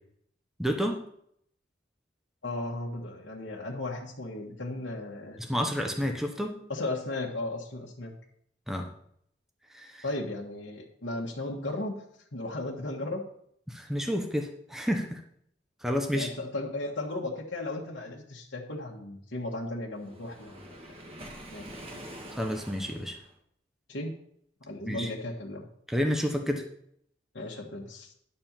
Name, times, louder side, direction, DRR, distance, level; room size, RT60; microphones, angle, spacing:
voice 1, 0.6-1.0 5.4-6.6 8.7-8.9 9.7-10.0 13.7-15.2 15.8-16.3 22.3-23.2 24.9-25.1 25.9-26.6, equal, ahead, 3 dB, 0.9 m, -30 dB
voice 2, 2.4-5.4 6.7-8.1 10.0-12.0 12.3-13.2 16.1-20.8 21.5-21.7 23.9-24.1 24.6-25.7 27.3-28.1, left 2 dB, 70° left, -3 dB, 1.5 m, -35 dB
Waves surf, 20.0-23.3, right 1 dB, 30° right, 1.7 m, -45 dB
11.0 x 4.4 x 7.3 m, 0.68 s
head